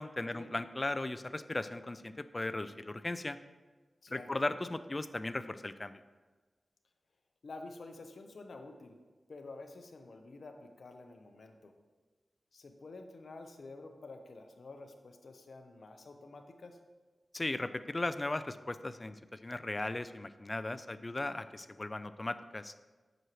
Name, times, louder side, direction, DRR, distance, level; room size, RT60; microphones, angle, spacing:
voice 1, 0.0-3.4 4.1-6.0 17.3-22.7, left 2 dB, 35° left, 12 dB, 0.4 m, -37 dB
voice 2, 7.4-9.0 9.3-11.7 12.5-16.8, left 3 dB, 75° left, 5 dB, 0.7 m, -49 dB
7.8 x 6.2 x 3.0 m, 1.3 s
cardioid pair, 40°, 0 cm